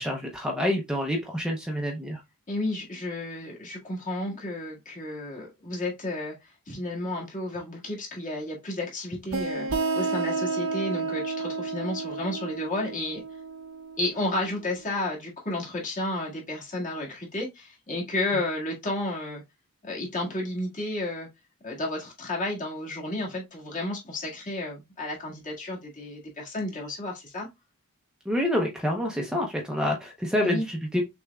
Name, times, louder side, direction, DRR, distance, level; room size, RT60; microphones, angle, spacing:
voice 1, 0.0-2.2 28.3-31.0, left 1 dB, 5° right, 0.7 m, -27 dB
voice 2, 2.5-13.2 14.0-19.4 19.8-21.3 21.6-27.5 30.4-30.6, left 2 dB, 35° left, 1.9 m, -32 dB
sound 1, 9.3-14.7, right 3 dB, 65° right, 0.9 m, -31 dB
6.3 x 3.4 x 2.3 m
head